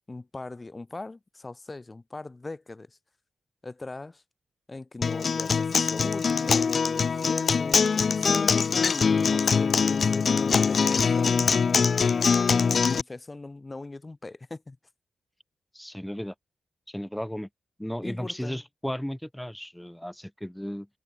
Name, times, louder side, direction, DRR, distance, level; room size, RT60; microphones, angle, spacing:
voice 1, 0.1-3.0 3.6-4.2 4.7-11.7 12.9-14.8 18.0-18.6, left 2 dB, 20° left, 1.0 m, -40 dB
Acoustic guitar, 5.0-13.0, left 5 dB, 50° left, 0.4 m, -23 dB
sound 1, 6.2-10.4, right 5 dB, 50° right, 7.1 m, -64 dB
voice 2, 15.7-16.3 16.9-17.5 17.8-20.9, equal, 5° left, 2.8 m, -35 dB
wide cardioid pair, 135°, 0 cm